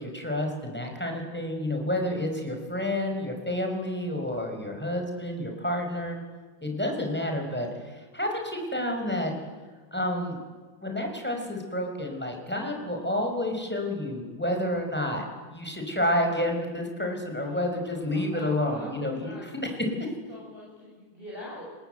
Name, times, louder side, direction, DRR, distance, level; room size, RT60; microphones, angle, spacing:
voice 1, 0.0-6.2 6.6-9.3 9.9-10.4 10.8-19.8, left 1 dB, 5° left, 3 dB, 5.3 m, -30 dB
voice 2, 17.4-19.7 20.3-21.6, left 1 dB, 25° right, -4 dB, 7.1 m, -45 dB
29.5 x 21.0 x 9.2 m, 1.4 s
omnidirectional pair, 2.3 m